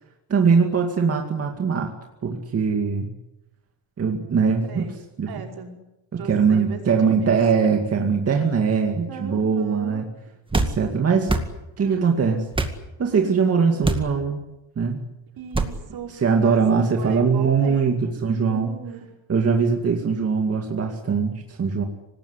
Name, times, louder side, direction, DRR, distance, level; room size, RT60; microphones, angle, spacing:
voice 1, 0.3-1.9 2.2-3.1 4.0-4.8 5.2-5.3 6.1-10.1 10.5-11.3 11.8-12.4 13.0-14.4 14.8-15.0 16.2-18.7 19.3-21.8, right 5 dB, 35° right, 3 dB, 2.3 m, -21 dB
voice 2, 4.7-5.0 5.3-5.8 6.1-7.4 9.1-10.1 11.1-12.2 13.0-13.6 15.4-16.6 16.9-19.0, right 6 dB, 55° right, 3 dB, 5.3 m, -38 dB
sound 1, 10.5-10.8 11.3-11.5 12.5-12.8 13.8-14.1 15.5-15.7, right 2 dB, 10° right, 2.0 m, -23 dB
25.5 x 19.5 x 9.9 m, 0.95 s
cardioid pair, 160°, 44 cm